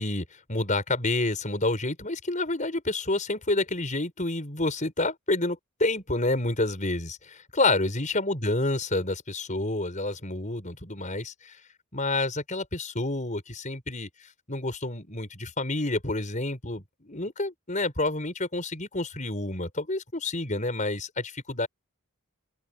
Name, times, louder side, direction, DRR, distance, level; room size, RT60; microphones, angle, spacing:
voice 1, 0.0-11.6 11.9-21.7, left 2 dB, 35° left, 5.7 m, -29 dB
open air
head